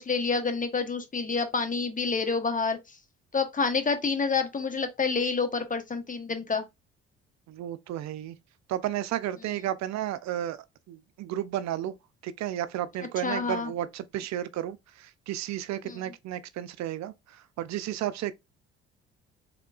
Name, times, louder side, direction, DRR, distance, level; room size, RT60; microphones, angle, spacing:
voice 1, 0.0-2.8 3.3-6.6 13.2-13.7 15.8-16.0, left 4 dB, 25° left, 1.0 m, -28 dB
voice 2, 7.5-8.4 8.7-12.0 12.2-18.3, right 12 dB, 60° right, 0.5 m, -33 dB
3.7 x 3.4 x 2.4 m
hypercardioid pair, 60°, 31 cm